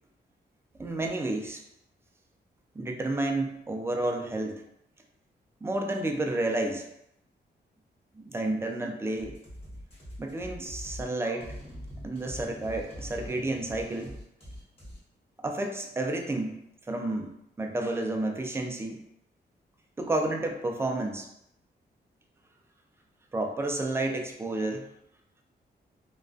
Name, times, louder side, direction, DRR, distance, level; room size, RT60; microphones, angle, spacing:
voice 1, 0.8-1.6 2.7-4.6 5.6-6.8 8.2-9.4 10.2-11.6 12.0-14.2 15.4-16.6 16.9-19.0 20.0-21.3 23.3-24.9, right 2 dB, 15° right, 3 dB, 0.3 m, -31 dB
sound 1, 9.2-15.0, equal, 35° left, 1.1 m, -43 dB
2.4 x 2.2 x 2.3 m, 0.79 s
wide cardioid pair, 110°, 18 cm